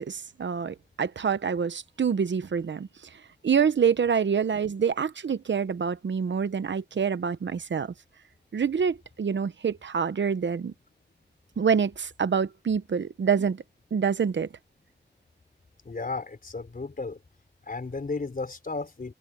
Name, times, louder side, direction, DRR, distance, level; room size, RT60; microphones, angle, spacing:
voice 1, 0.0-2.9 3.4-7.9 8.5-10.7 11.6-13.6 13.9-14.5, right 6 dB, 85° right, 0.9 m, -26 dB
voice 2, 15.8-17.2 17.7-19.1, left 3 dB, 50° left, 4.4 m, -34 dB
wide cardioid pair, 100°, 18 cm